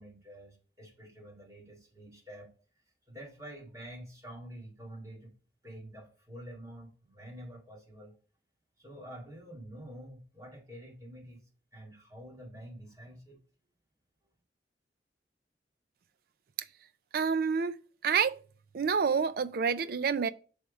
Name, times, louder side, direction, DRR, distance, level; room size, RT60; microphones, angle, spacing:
voice 1, 0.0-2.5 3.1-5.3 5.6-8.1 8.8-11.4 11.7-13.4, right 1 dB, 20° right, 2.1 m, -48 dB
voice 2, 17.1-17.7 18.0-18.4 18.7-20.3, right 6 dB, 55° right, 0.4 m, -28 dB
6.1 x 3.5 x 5.1 m
head